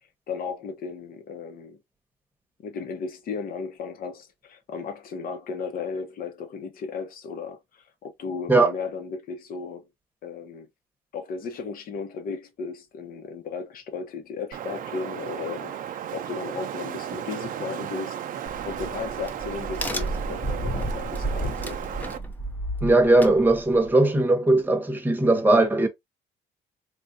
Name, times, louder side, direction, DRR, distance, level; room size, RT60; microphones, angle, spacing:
voice 1, 0.3-1.8 2.6-9.9 10.2-10.7 11.1-15.8 16.1-18.2 18.7-21.8, left 5 dB, 60° left, 0.9 m, -35 dB
Wind, 14.5-22.2, right 10 dB, 55° right, 0.5 m, -35 dB
Crack, 18.5-23.9, right 1 dB, 10° left, 0.6 m, -32 dB
voice 2, 22.8-25.9, right 2 dB, 10° right, 1.0 m, -19 dB
3.4 x 2.5 x 2.7 m
cardioid pair, 110°, 17 cm